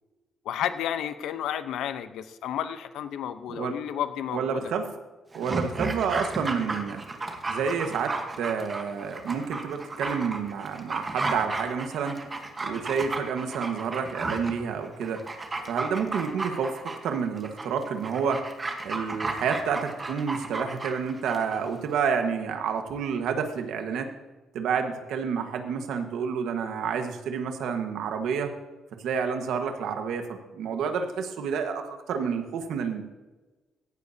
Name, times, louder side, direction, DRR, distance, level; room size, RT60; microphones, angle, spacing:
voice 1, 0.4-4.7, left 10 dB, 85° left, 11 dB, 0.8 m, -32 dB
voice 2, 4.3-4.9 5.3-7.0 7.5-12.2 12.6-15.2 15.7-18.4 18.8-24.1 24.5-28.5 29.0-33.0, right 6 dB, 75° right, 6 dB, 1.4 m, -29 dB
Dog, 5.3-21.6 21.9-22.0, right 3 dB, 20° right, 1.2 m, -34 dB
16.5 x 12.0 x 2.8 m, 1.2 s
cardioid pair, 180°, 0 cm